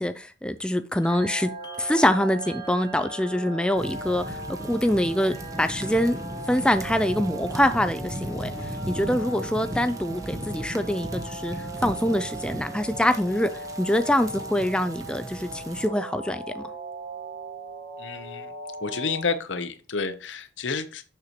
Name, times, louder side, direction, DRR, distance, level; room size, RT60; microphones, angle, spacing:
voice 1, 0.0-1.5 1.8-6.2 6.5-8.5 8.9-13.5 13.8-16.7, left 1 dB, 5° left, 0.3 m, -25 dB
sound 1, 0.9-11.0 11.4-12.6, right 4 dB, 20° left, 1.0 m, -50 dB
sound 2, 1.0-19.2, right 2 dB, 50° right, 2.2 m, -39 dB
sound 3, 3.8-15.9, right 1 dB, 15° right, 0.7 m, -37 dB
voice 2, 18.0-18.5 18.8-21.0, left 4 dB, 75° left, 0.8 m, -30 dB
6.6 x 6.6 x 2.9 m
head